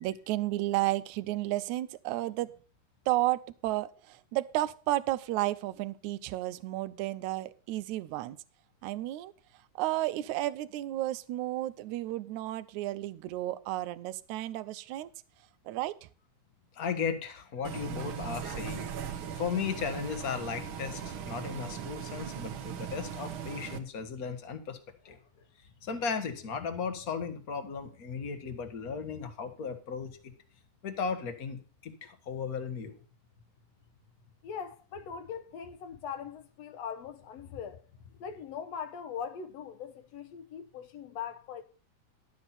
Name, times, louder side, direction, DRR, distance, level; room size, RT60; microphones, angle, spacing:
voice 1, 0.0-2.5 3.1-8.4 8.8-9.3 9.8-15.1 15.7-16.1, right 16 dB, 80° right, 2.0 m, -32 dB
voice 2, 16.7-24.8 25.0-25.2 25.8-30.2 30.8-33.0, left 6 dB, 45° left, 1.2 m, -36 dB
Bus, 17.6-23.8, right 8 dB, 60° right, 1.5 m, -39 dB
voice 3, 34.4-37.8 38.2-41.6, left 7 dB, 65° left, 2.0 m, -41 dB
11.5 x 8.2 x 4.2 m
omnidirectional pair, 3.4 m